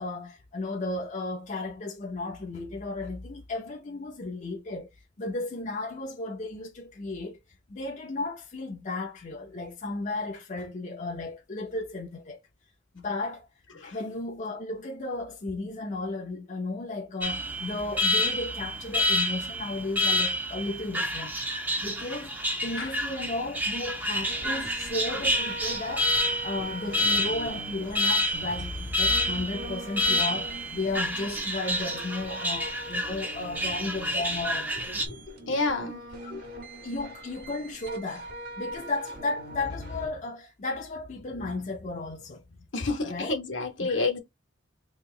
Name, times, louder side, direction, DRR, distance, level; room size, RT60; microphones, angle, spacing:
voice 1, 0.0-4.9 5.2-7.4 7.7-12.4 12.9-13.5 13.8-21.3 21.8-22.4 22.6-26.1 26.4-35.1 36.2-36.4 36.8-38.3 38.6-42.6 42.9-43.4 43.8-44.0, left 2 dB, 40° left, 0.6 m, -34 dB
Alarm, 17.2-35.1, equal, 10° right, 0.6 m, -29 dB
sound 1, 24.2-40.1, right 1 dB, 50° right, 1.5 m, -42 dB
voice 2, 35.1-36.0 42.7-44.2, left 3 dB, 70° left, 1.0 m, -29 dB
2.9 x 2.9 x 3.7 m
head